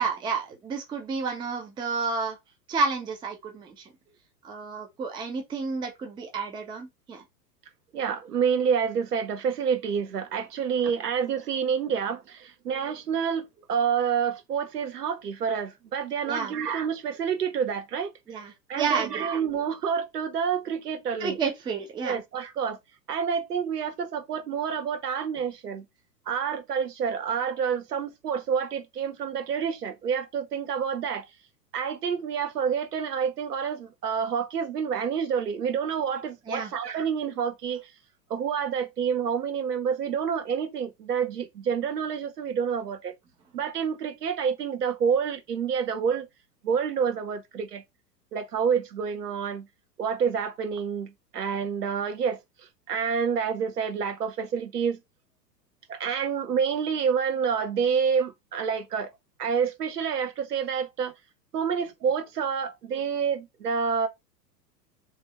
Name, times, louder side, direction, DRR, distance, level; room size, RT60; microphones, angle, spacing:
voice 1, 0.0-2.4 2.7-3.9 4.4-7.2 16.3-16.5 18.3-19.3 21.2-22.2 36.5-36.7, right 4 dB, 10° right, 0.6 m, -30 dB
voice 2, 7.9-18.1 18.7-21.4 22.0-22.8 23.1-25.8 26.3-31.2 31.7-37.8 38.3-43.1 43.5-46.3 46.6-47.8 48.3-49.7 50.0-52.4 52.9-55.0 55.9-59.1 59.4-61.1 61.5-64.1, right 7 dB, 65° right, 1.1 m, -28 dB
3.4 x 3.1 x 4.1 m
figure-of-eight pair, 100°, 50 cm